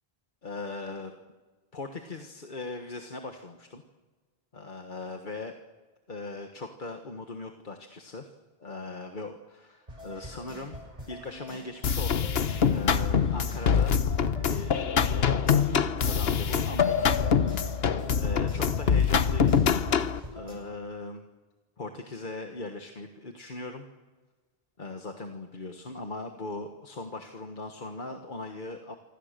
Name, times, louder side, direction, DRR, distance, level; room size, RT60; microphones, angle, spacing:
voice 1, 0.4-1.1 1.7-3.8 4.5-5.5 6.1-8.3 8.6-10.8 11.1-14.0 14.4-17.3 18.2-19.5 20.3-21.2 21.8-23.8 24.8-28.9, left 3 dB, 50° left, 4 dB, 1.6 m, -39 dB
sound 1, 9.9-20.5, equal, 40° right, 7.9 m, -45 dB
sound 2, 11.8-20.2, left 7 dB, 75° left, 1.2 m, -24 dB
27.0 x 25.5 x 6.7 m, 1.3 s
omnidirectional pair, 1.0 m